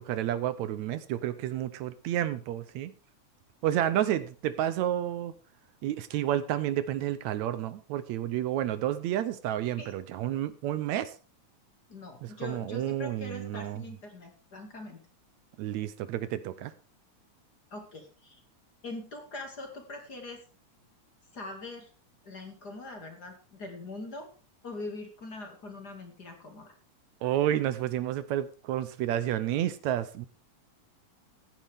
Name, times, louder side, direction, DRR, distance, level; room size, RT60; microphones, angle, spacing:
voice 1, 0.0-2.9 3.6-5.3 5.8-11.1 12.2-13.8 15.6-16.7 27.2-30.3, right 12 dB, 75° right, 13 dB, 2.0 m, -30 dB
voice 2, 11.9-15.0 17.7-18.4 18.8-20.4 21.3-21.9 22.2-24.3 24.6-26.7, left 2 dB, 35° left, 4 dB, 2.6 m, -42 dB
15.0 x 10.5 x 3.5 m, 0.35 s
omnidirectional pair, 3.4 m